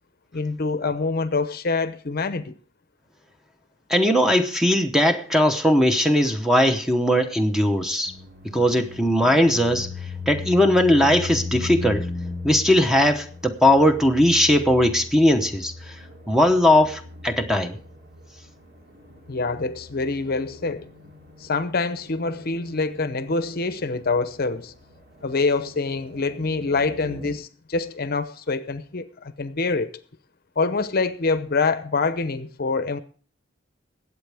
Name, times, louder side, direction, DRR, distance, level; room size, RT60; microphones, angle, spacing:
voice 1, 0.3-2.5 19.3-20.9 21.4-24.7 25.2-30.0 30.6-33.0, left 3 dB, 50° left, 0.8 m, -25 dB
voice 2, 3.9-8.1 8.4-9.9 10.3-12.1 12.4-17.8, left 1 dB, ahead, 0.9 m, -19 dB
sound 1, 8.1-27.3, left 3 dB, 55° right, 2.6 m, -38 dB
20.5 x 8.3 x 3.5 m
head